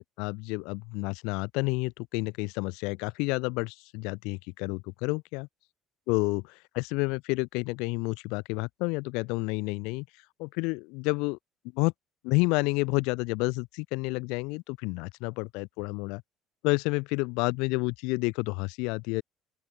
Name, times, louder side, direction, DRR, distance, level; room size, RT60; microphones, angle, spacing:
voice 1, 0.0-5.5 6.1-10.1 10.4-11.4 11.7-11.9 12.2-16.2 16.6-19.2, left 28 dB, 80° left, 0.7 m, -30 dB
open air
supercardioid pair, 70°, 0 cm